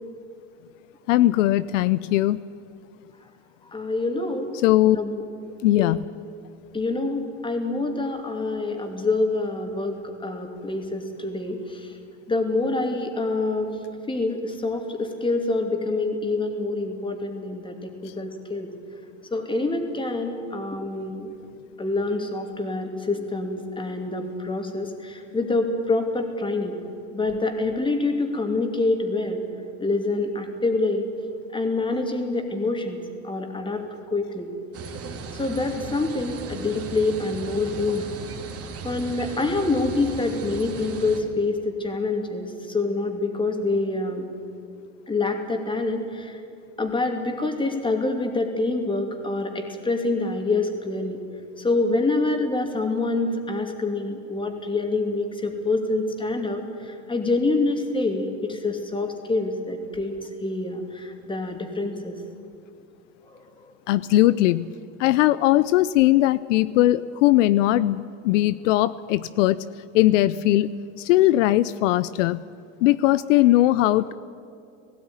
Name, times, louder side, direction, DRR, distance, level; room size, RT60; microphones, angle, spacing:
voice 1, 1.1-2.4 4.6-5.0 5.6-6.0 63.9-64.7 65.0-69.6 69.9-70.7 71.0-72.4 72.8-74.1, left 15 dB, 75° left, 16 dB, 0.6 m, -19 dB
voice 2, 3.7-4.5 4.9-5.2 5.8-5.9 6.7-11.9 12.3-13.8 14.1-18.7 19.3-21.3 21.8-26.8 27.1-29.4 29.8-31.1 31.5-34.5 35.3-38.1 38.8-44.3 45.1-46.4 46.8-51.2 51.6-62.2 63.3-63.7, left 2 dB, 15° left, 4 dB, 2.8 m, -26 dB
sound 1, 34.7-41.2, right 5 dB, 40° right, 2.8 m, -36 dB
18.0 x 16.0 x 9.7 m, 2.5 s
supercardioid pair, 115°, 38 cm